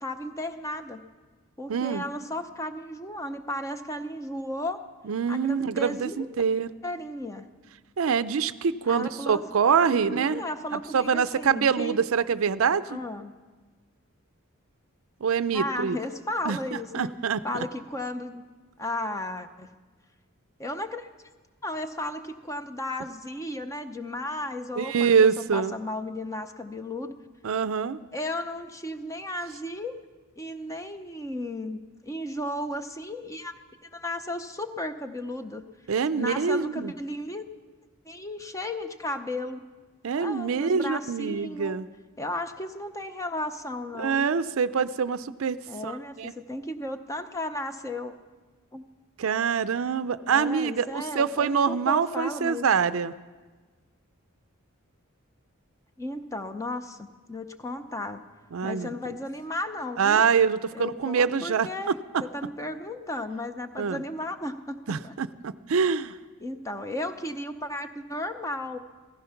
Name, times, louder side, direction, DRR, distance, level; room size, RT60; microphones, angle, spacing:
voice 1, 0.0-1.0 1.6-4.8 5.3-6.3 6.8-7.5 8.9-9.4 9.9-12.0 12.9-13.3 15.5-17.1 17.4-18.4 18.8-19.7 20.6-21.3 21.6-27.1 28.1-29.9 30.4-35.6 36.1-37.5 38.0-39.6 40.2-41.8 42.2-44.3 45.7-48.1 48.7-48.8 50.3-52.7 56.0-58.2 58.6-60.3 60.7-62.0 62.2-65.1 66.4-68.8, left 1 dB, 15° left, 8 dB, 0.7 m, -34 dB
voice 2, 1.7-2.0 5.1-6.7 8.0-10.4 10.7-13.0 15.2-16.0 16.4-17.6 24.8-25.8 27.4-28.0 35.9-36.9 40.0-41.9 44.0-46.3 49.2-53.1 58.5-58.9 60.0-61.9 63.8-64.0 64.9-66.1, right 6 dB, 75° right, 15 dB, 0.5 m, -25 dB
16.0 x 15.0 x 5.8 m, 1.3 s
head